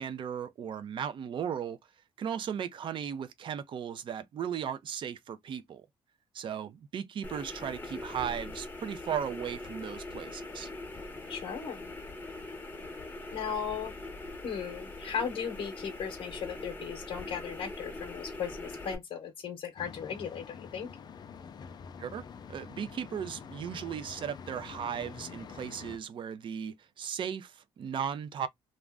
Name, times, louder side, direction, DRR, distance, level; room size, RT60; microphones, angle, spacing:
voice 1, 0.0-1.8 2.2-5.9 6.3-10.7 22.0-28.5, right 8 dB, 55° right, 0.5 m, -36 dB
sound 1, 7.2-19.0, left 2 dB, 20° left, 0.8 m, -42 dB
voice 2, 11.3-11.9 13.3-13.9 14.4-20.9, left 7 dB, 65° left, 0.7 m, -37 dB
sound 2, 19.8-26.0, left 6 dB, 45° left, 0.4 m, -46 dB
2.5 x 2.1 x 3.3 m
cardioid pair, 100°, 10 cm